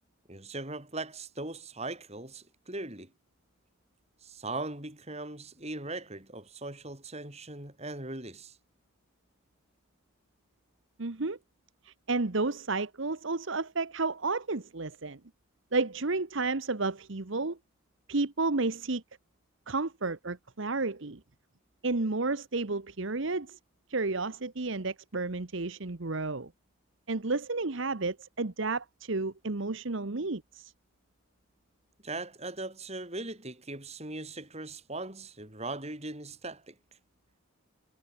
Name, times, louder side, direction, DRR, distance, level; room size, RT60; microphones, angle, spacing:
voice 1, 0.3-3.1 4.2-8.6 32.0-36.7, right 2 dB, 30° right, 4.8 m, -39 dB
voice 2, 11.0-11.4 11.8-15.2 15.7-17.6 18.1-19.0 19.7-21.2 21.8-23.6 23.9-26.5 27.1-30.7, right 3 dB, 60° right, 1.1 m, -31 dB
head